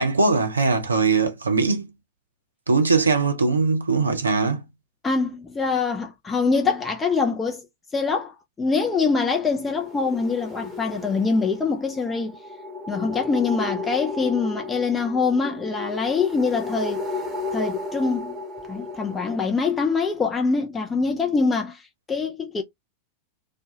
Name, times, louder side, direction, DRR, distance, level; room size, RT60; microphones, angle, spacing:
voice 1, 0.0-1.9 2.7-4.6, right 4 dB, 75° right, 0.5 m, -21 dB
voice 2, 5.0-7.6 7.9-12.4 12.9-17.0 17.5-18.3 18.7-21.8 22.1-22.6, left 4 dB, 15° left, 0.4 m, -24 dB
sound 1, 9.5-19.4, left 3 dB, 5° right, 0.9 m, -34 dB
2.2 x 2.1 x 2.7 m
figure-of-eight pair, 90°, 0 cm